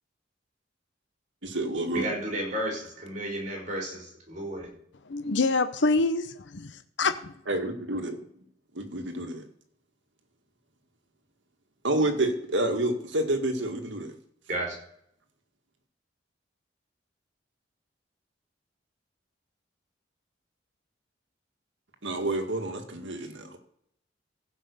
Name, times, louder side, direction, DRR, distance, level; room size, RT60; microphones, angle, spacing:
voice 1, 1.4-2.1 7.5-8.2 8.8-9.4 11.8-14.1 22.0-23.6, right 1 dB, 75° right, 6 dB, 1.9 m, -29 dB
voice 2, 1.9-4.7 14.5-14.8, right 1 dB, 40° right, -1 dB, 5.0 m, -32 dB
voice 3, 5.1-7.3, left 3 dB, 70° left, 10 dB, 0.8 m, -26 dB
15.5 x 5.6 x 6.7 m, 0.70 s
head